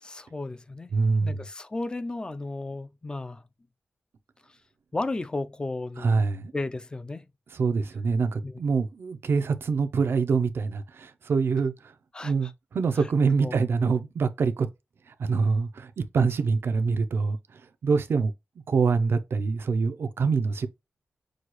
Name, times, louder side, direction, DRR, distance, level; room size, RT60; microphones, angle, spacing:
voice 1, 0.0-0.9 1.2-3.4 4.9-6.2 6.5-7.3 8.4-8.6 12.1-12.5 13.4-13.6, left 2 dB, 20° left, 0.4 m, -34 dB
voice 2, 0.9-1.4 6.0-6.5 7.5-11.7 12.2-14.7 15.1-18.3 18.7-20.7, right 4 dB, 65° right, 0.6 m, -25 dB
6.2 x 2.3 x 3.0 m
wide cardioid pair, 120°, 4 cm